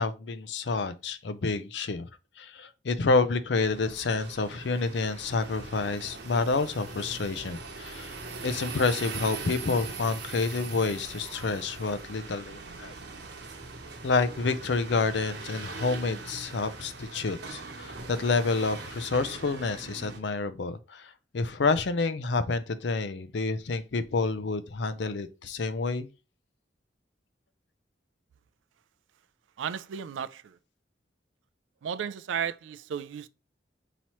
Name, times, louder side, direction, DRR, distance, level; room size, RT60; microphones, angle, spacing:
voice 1, 0.0-2.1 2.4-8.2 8.4-12.9 14.0-26.1, left 3 dB, 70° left, 0.5 m, -29 dB
sound 1, 3.6-20.2, right 4 dB, 65° right, 0.9 m, -41 dB
voice 2, 29.6-30.6 31.8-33.3, right 8 dB, 90° right, 0.4 m, -34 dB
5.5 x 3.0 x 3.0 m
head